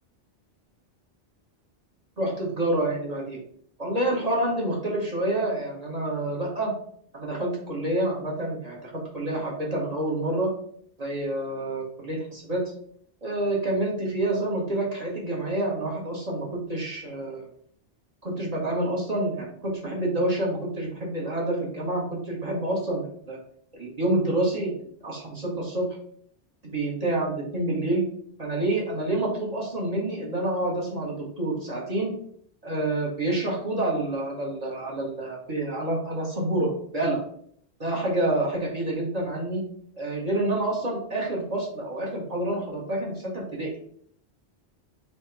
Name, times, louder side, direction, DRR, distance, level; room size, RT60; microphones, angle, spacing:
voice 1, 2.2-3.4 3.8-6.7 7.1-10.5 11.0-12.6 13.2-17.5 18.2-23.4 23.7-25.9 26.7-28.1 28.4-32.1 32.6-37.2 37.8-39.7 40.0-43.7, right 1 dB, 35° right, -4 dB, 1.2 m, -28 dB
3.4 x 2.8 x 4.5 m, 0.63 s
omnidirectional pair, 1.2 m